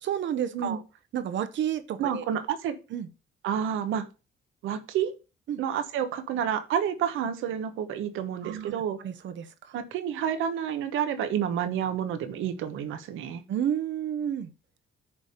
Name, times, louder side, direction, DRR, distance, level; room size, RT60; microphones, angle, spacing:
voice 1, 0.0-0.8 1.1-2.2 2.9-3.1 5.5-5.6 8.4-8.7 9.0-9.7 13.5-14.5, right 9 dB, 70° right, 1.0 m, -31 dB
voice 2, 2.0-2.8 3.4-4.1 4.6-5.1 5.6-9.0 9.7-13.4, right 9 dB, 90° right, 1.2 m, -29 dB
10.0 x 3.5 x 6.7 m
cardioid pair, 90°, 20 cm